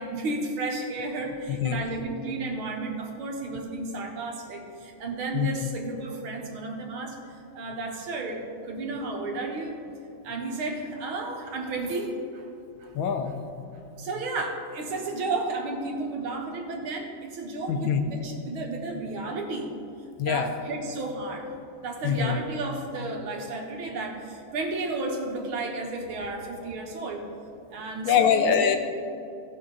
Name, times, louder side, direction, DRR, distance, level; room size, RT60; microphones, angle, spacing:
voice 1, 0.0-9.8 10.2-12.5 12.8-12.9 14.0-19.7 20.2-21.5 21.8-27.3 27.7-28.7, right 2 dB, 90° right, 1 dB, 2.1 m, -33 dB
voice 2, 1.5-1.8 5.3-5.5 12.9-13.8 17.7-18.0 20.2-20.5 22.0-22.4 28.0-28.8, left 7 dB, 75° left, 6 dB, 1.5 m, -24 dB
15.5 x 6.3 x 4.0 m, 2.6 s
omnidirectional pair, 2.2 m